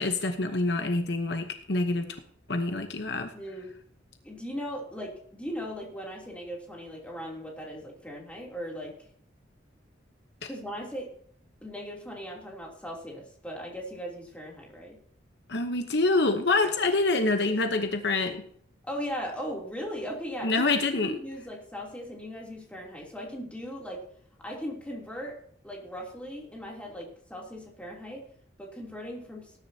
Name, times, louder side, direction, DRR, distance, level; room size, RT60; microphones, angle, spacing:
voice 1, 0.0-2.2 2.5-3.3 10.4-10.5 15.5-18.4 20.4-21.1, left 3 dB, 60° left, 6 dB, 1.0 m, -26 dB
voice 2, 3.3-3.7 4.2-8.9 10.5-11.1 11.6-15.0 18.8-20.6 21.0-24.0 24.4-28.2 28.6-29.5, equal, 5° left, -2 dB, 3.1 m, -38 dB
18.5 x 10.5 x 2.8 m, 0.63 s
head